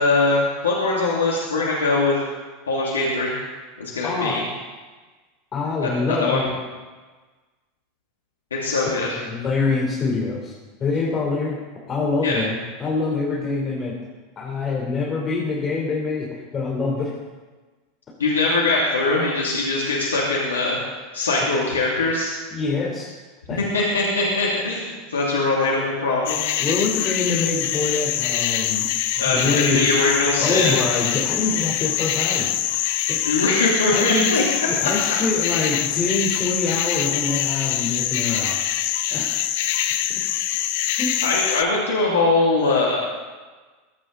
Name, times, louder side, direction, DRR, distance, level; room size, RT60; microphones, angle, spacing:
voice 1, 0.0-2.2 2.7-3.3 3.8-4.4 5.8-6.4 8.5-9.1 12.2-12.4 18.2-20.8 21.1-22.3 23.6-26.5 29.2-30.8 33.2-34.4 34.8-34.9 41.2-43.0, left 3 dB, 90° left, -4 dB, 2.7 m, -21 dB
voice 2, 4.0-4.4 5.5-6.5 8.8-10.5 10.8-11.6 11.9-13.9 14.4-16.3 16.5-17.1 22.5-23.1 23.5-23.6 26.6-28.9 29.3-32.5 33.1-33.3 33.9-34.3 34.7-38.5 39.1-39.4 41.0-41.1, left 3 dB, 30° left, -3 dB, 3.6 m, -25 dB
sound 1, 26.3-41.6, left 12 dB, 65° left, 0.9 m, -24 dB
22.5 x 8.8 x 4.0 m, 1.3 s
hypercardioid pair, 90°, 0 cm